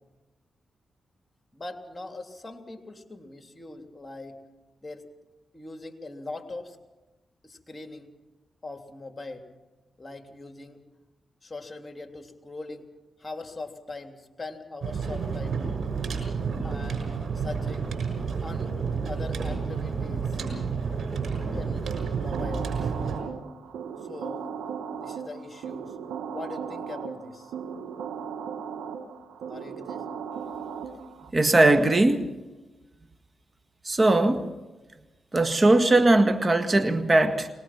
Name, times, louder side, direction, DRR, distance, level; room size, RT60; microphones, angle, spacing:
voice 1, 1.5-4.4 4.8-5.1 5.5-6.8 7.4-8.1 8.6-9.5 10.0-10.8 11.4-12.9 13.2-15.6 16.6-17.9 18.4-18.7 19.0-20.4 21.5-22.9 24.0-24.5 25.0-26.0 26.3-27.5 29.5-30.1, left 2 dB, 30° left, 3.0 m, -41 dB
sound 1, 14.8-23.2, right 5 dB, 65° right, 6.3 m, -30 dB
sound 2, 21.9-31.3, right 7 dB, 90° right, 1.4 m, -37 dB
voice 2, 31.3-32.3 33.8-34.5 35.3-37.5, right 2 dB, 35° right, 1.8 m, -20 dB
23.0 x 20.0 x 6.0 m
supercardioid pair, 45°, 0 cm